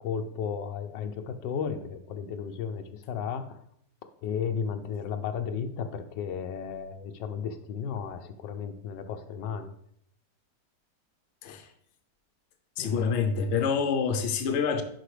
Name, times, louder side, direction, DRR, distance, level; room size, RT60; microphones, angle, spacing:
voice 1, 0.0-3.6 4.2-9.7 12.8-13.2, left 7 dB, 85° left, 1.3 m, -34 dB
voice 2, 12.8-14.8, left 6 dB, 50° left, 0.9 m, -27 dB
10.5 x 4.6 x 3.3 m
omnidirectional pair, 1.9 m